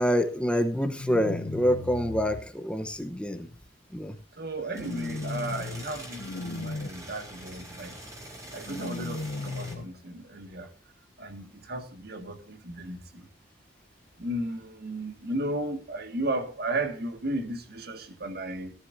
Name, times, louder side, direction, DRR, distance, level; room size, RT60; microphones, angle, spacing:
voice 1, 0.0-3.5 3.9-4.1, equal, 5° left, 0.9 m, -26 dB
sound 1, 1.0-2.4 4.7-5.8 6.2-6.9 8.7-9.8, left 3 dB, 85° left, 0.7 m, -36 dB
voice 2, 4.4-7.9 8.5-10.7 11.2-13.0 14.2-18.7, right 1 dB, 60° right, 1.9 m, -34 dB
sound 2, 4.7-9.7, right 1 dB, 20° right, 3.8 m, -44 dB
18.0 x 13.0 x 2.6 m
head